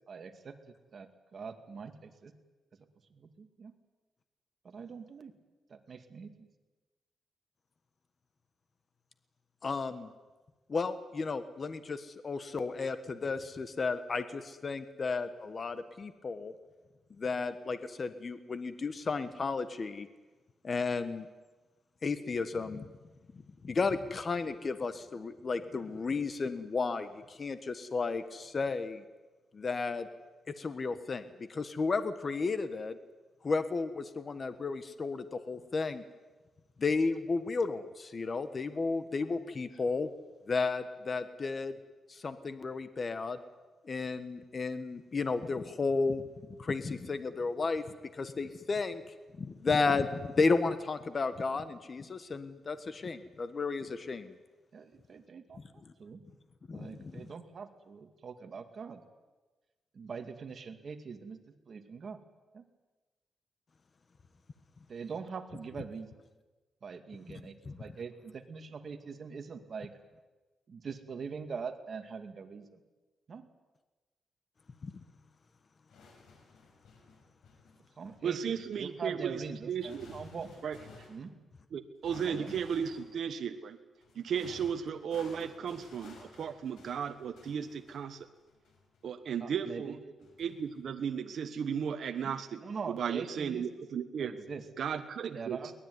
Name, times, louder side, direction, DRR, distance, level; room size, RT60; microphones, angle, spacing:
voice 1, 0.1-0.6 0.9-2.3 3.1-3.7 4.6-5.3 5.7-6.5 39.2-39.4 54.7-56.2 56.7-59.0 59.9-62.2 62.5-62.6 64.9-66.1 66.8-69.9 70.7-72.8 73.3-73.5 78.0-80.5 81.1-81.3 82.2-82.5 89.4-90.0 92.2-93.7 94.2-94.6 95.3-95.7, right 5 dB, 45° right, 6 dB, 2.3 m, -43 dB
voice 2, 9.6-10.1 10.7-16.5 17.2-20.1 20.6-21.3 22.0-22.9 23.6-29.0 29.5-30.1 30.6-33.0 33.4-36.0 36.8-40.1 40.5-41.7 42.1-43.4 43.8-46.3 46.6-47.8 48.1-49.0 49.4-54.3 55.8-55.9 56.7-57.3 67.6-67.8 74.8-74.9, left 4 dB, 35° left, 11 dB, 1.3 m, -33 dB
sound 1, 75.9-81.3 82.0-83.2 84.0-89.2 90.2-90.9, left 3 dB, 90° left, 6.7 m, -55 dB
voice 3, 78.2-80.2 80.6-80.8 81.7-83.8 84.1-88.3 89.0-90.0 90.4-94.3 94.8-95.6, right 7 dB, 65° right, 6 dB, 1.3 m, -35 dB
23.0 x 19.5 x 9.6 m, 1.2 s
cardioid pair, 130°, 0 cm